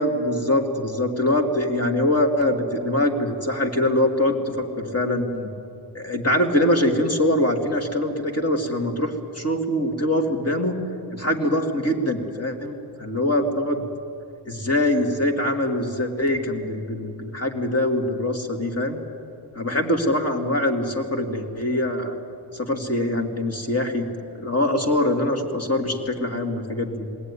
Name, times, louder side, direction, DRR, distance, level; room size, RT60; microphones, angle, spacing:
voice 1, 0.0-5.5 5.9-10.8 11.1-13.9 14.5-19.0 19.6-22.2 22.5-24.1 24.3-27.1, left 1 dB, 30° left, 3 dB, 2.5 m, -23 dB
21.0 x 17.5 x 9.9 m, 2.5 s
wide cardioid pair, 80°, 46 cm